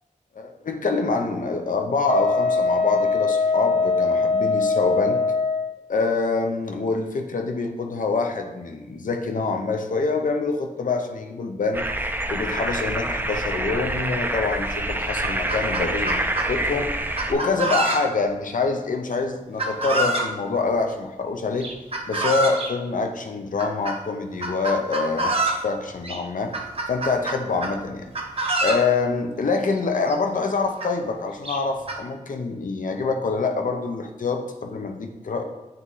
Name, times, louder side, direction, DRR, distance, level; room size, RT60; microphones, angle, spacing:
voice 1, 0.3-5.2 5.9-11.8 12.3-16.2 16.5-16.9 17.3-21.7 22.1-25.3 25.6-26.6 26.9-28.1 28.6-35.4, left 4 dB, 85° left, 4 dB, 0.6 m, -25 dB
Wind instrument woodwind instrument, 2.0-5.7, left 4 dB, 45° left, 0.4 m, -22 dB
sound 1, 11.7-17.3, right 1 dB, 15° right, 0.4 m, -27 dB
Chicken rooster, 14.6-14.7 15.0-16.5 17.2-18.3 19.6-20.3 21.6-22.7 23.6-24.0 24.4-25.6 26.0-26.2 26.5-27.8 28.1-28.8 29.8-29.9 30.1-30.2 30.8-30.9 31.4-32.0, right 2 dB, 45° right, 0.8 m, -26 dB
7.7 x 3.1 x 4.0 m, 1.1 s
wide cardioid pair, 85°, 13 cm